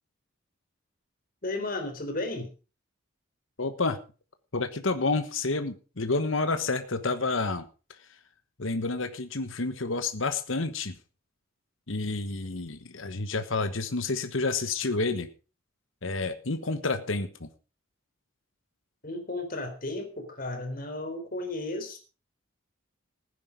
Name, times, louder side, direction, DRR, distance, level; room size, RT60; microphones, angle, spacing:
voice 1, 1.4-2.5 19.0-22.0, left 2 dB, 45° left, 3.7 m, -34 dB
voice 2, 3.6-4.0 4.5-7.7 8.6-10.9 11.9-15.3 16.0-17.5, left 3 dB, 70° left, 1.3 m, -29 dB
15.5 x 10.0 x 5.1 m
head